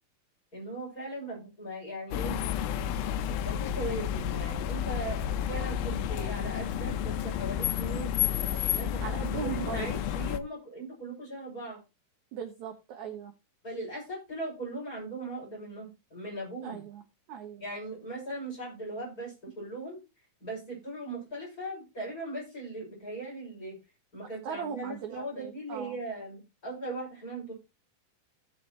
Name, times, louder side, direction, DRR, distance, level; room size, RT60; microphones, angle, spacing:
voice 1, 0.5-2.4 3.3-8.1 8.7-11.8 13.6-16.8 17.6-20.0 20.4-23.8 24.1-27.5, right 2 dB, 20° left, -3 dB, 7.2 m, -39 dB
sound 1, 2.1-10.4, left 10 dB, 80° left, 2.5 m, -31 dB
voice 2, 9.0-10.0 12.3-13.3 16.6-17.0 17.3-17.6 24.4-26.0, right 8 dB, 65° right, 5 dB, 2.0 m, -38 dB
16.0 x 6.2 x 3.1 m, 0.26 s
omnidirectional pair, 4.3 m